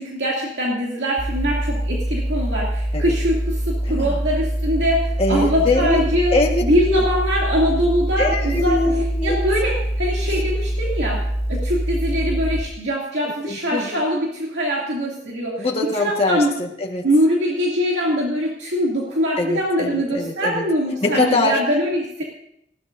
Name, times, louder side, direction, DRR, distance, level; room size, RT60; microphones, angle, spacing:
voice 1, 0.0-6.3 6.6-8.8 9.2-11.2 11.5-15.7 16.0-16.5 17.0-22.2, equal, 70° right, -4 dB, 2.6 m, -22 dB
sound 1, 1.2-12.6, right 1 dB, 20° right, 2.7 m, -24 dB
voice 2, 5.2-6.0 6.3-7.1 8.2-9.4 10.3-10.4 13.4-14.0 15.6-17.1 19.4-20.6 21.0-21.6, left 2 dB, 35° left, -1 dB, 1.5 m, -23 dB
19.5 x 16.0 x 2.6 m, 0.75 s
head